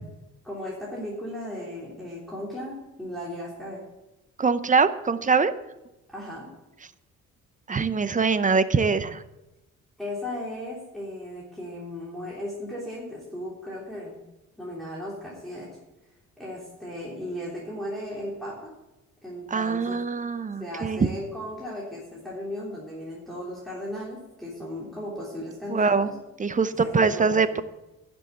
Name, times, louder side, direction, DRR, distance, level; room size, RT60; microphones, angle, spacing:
voice 1, 0.4-3.8 6.1-6.5 10.0-14.2 14.6-15.7 16.4-18.7 19.2-20.0 20.6-26.1 26.7-27.6, left 1 dB, ahead, -7 dB, 3.4 m, -36 dB
voice 2, 4.4-5.5 7.7-9.2 19.5-21.1 25.7-26.1 26.4-27.6, right 5 dB, 25° right, 13 dB, 0.7 m, -23 dB
10.5 x 6.3 x 8.0 m, 0.97 s
cardioid pair, 90°, 30 cm